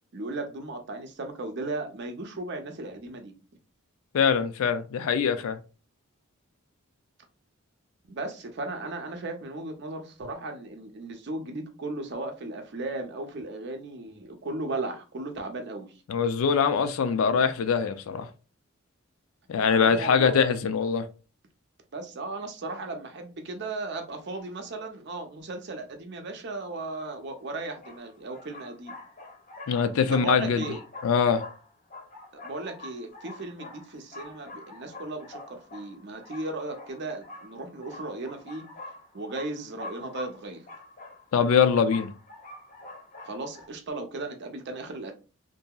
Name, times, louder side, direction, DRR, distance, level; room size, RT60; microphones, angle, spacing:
voice 1, 0.1-3.3 8.1-15.9 19.6-20.3 21.9-28.9 30.1-30.8 32.4-38.7 39.1-40.7 43.2-45.1, right 2 dB, 55° right, 0.5 m, -36 dB
voice 2, 4.1-5.6 16.1-18.3 19.5-21.1 29.7-30.7 31.0-31.4 41.3-42.1, left 6 dB, 80° left, 0.4 m, -23 dB
sound 1, 27.0-27.1 27.8-43.7, left 2 dB, 40° left, 0.7 m, -45 dB
2.8 x 2.6 x 2.3 m
head